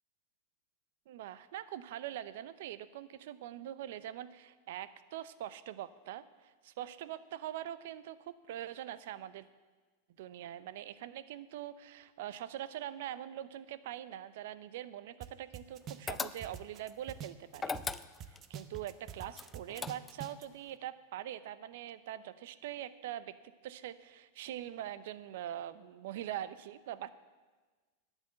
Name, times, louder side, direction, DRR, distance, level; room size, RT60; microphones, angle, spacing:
voice 1, 1.1-9.5 10.2-17.8 18.3-23.3 23.6-27.2, right 12 dB, 70° right, 15 dB, 0.6 m, -43 dB
sound 1, 15.2-15.3 15.5-17.9 18.2-20.4, right 8 dB, 35° right, 0.8 m, -45 dB
sound 2, 16.1-16.8 17.6-18.5 19.3-20.3, left 4 dB, 15° left, 0.5 m, -39 dB
11.5 x 9.1 x 7.5 m, 1.3 s
hypercardioid pair, 115°, 0 cm